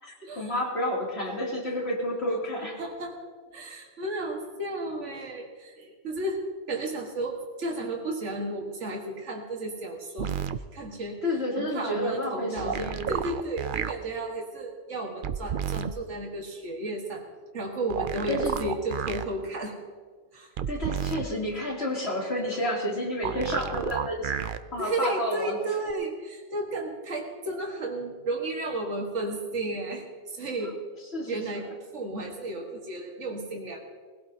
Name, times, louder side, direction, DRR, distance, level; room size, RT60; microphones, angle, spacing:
voice 1, 0.0-2.8 11.2-13.1 18.1-18.5 20.7-24.4 24.7-25.6 31.1-31.6, left 1 dB, 60° left, -3 dB, 3.0 m, -30 dB
voice 2, 2.8-3.2 3.5-6.4 6.7-10.4 10.7-11.2 11.6-17.2 17.5-19.7 20.3-20.5 24.8-30.8 31.3-33.8, right 2 dB, 75° right, 1 dB, 1.9 m, -33 dB
sound 1, 10.2-10.6 12.6-13.9 15.2-15.9 17.9-19.3 20.6-21.3 23.2-24.6 25.9-26.0, right 8 dB, 60° right, 0.6 m, -31 dB
21.0 x 16.5 x 2.8 m, 1.5 s
omnidirectional pair, 1.2 m